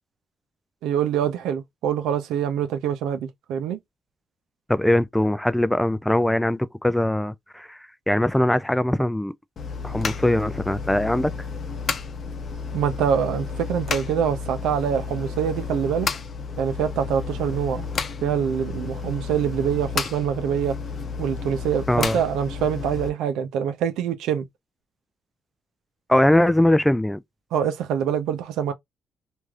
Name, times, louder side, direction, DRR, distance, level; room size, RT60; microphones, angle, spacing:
voice 1, 0.8-3.8 12.7-16.1 16.6-17.9 18.2-20.8 21.2-24.4 27.5-28.7, right 8 dB, 90° right, 0.6 m, -25 dB
voice 2, 4.7-7.8 8.1-9.3 9.8-11.3 21.9-22.2 26.1-27.2, left 1 dB, 5° left, 0.3 m, -21 dB
sound 1, 9.6-23.1, left 5 dB, 50° left, 0.7 m, -31 dB
3.2 x 2.6 x 2.4 m
cardioid pair, 90°, 0 cm